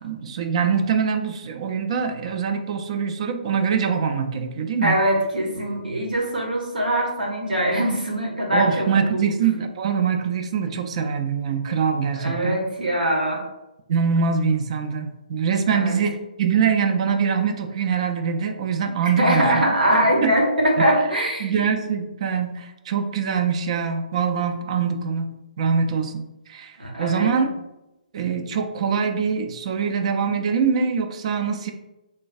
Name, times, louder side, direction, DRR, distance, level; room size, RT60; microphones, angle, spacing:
voice 1, 0.0-5.0 8.5-12.6 13.9-19.7 20.2-20.3 20.8-20.9 21.4-26.7 27.0-27.5 28.1-31.7, right 6 dB, 45° right, 6 dB, 0.3 m, -23 dB
voice 2, 4.8-9.2 12.2-13.4 15.7-15.9 19.2-21.6 26.8-27.3, right 1 dB, 80° right, 0 dB, 0.9 m, -22 dB
3.2 x 2.2 x 2.5 m, 0.94 s
figure-of-eight pair, 135°, 5 cm